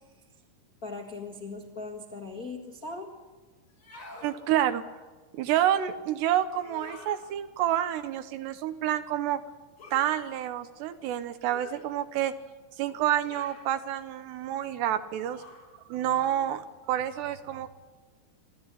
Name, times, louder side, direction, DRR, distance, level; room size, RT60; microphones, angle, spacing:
voice 1, 0.8-3.1, left 3 dB, 55° left, 0 dB, 1.0 m, -39 dB
sound 1, 3.7-4.3 6.6-7.2 9.8-10.1 11.5-11.9 13.2-13.7 15.3-15.7, left 1 dB, 35° left, 6.5 m, -47 dB
voice 2, 4.2-4.8 5.3-9.4 9.9-12.3 12.8-15.4 15.9-17.7, right 11 dB, 75° right, 11 dB, 2.9 m, -28 dB
27.5 x 13.0 x 9.8 m, 1.3 s
omnidirectional pair, 5.2 m